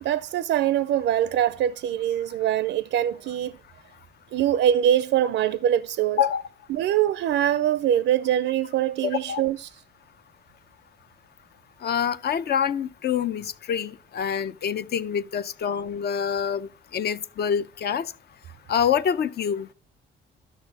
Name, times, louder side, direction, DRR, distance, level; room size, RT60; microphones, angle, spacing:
voice 1, 0.0-3.6 4.3-6.2 6.7-9.8, right 11 dB, 70° right, 0.4 m, -23 dB
voice 2, 11.8-18.1 18.7-19.7, left 8 dB, 55° left, 0.6 m, -26 dB
12.5 x 6.3 x 4.0 m
cardioid pair, 90°, 20 cm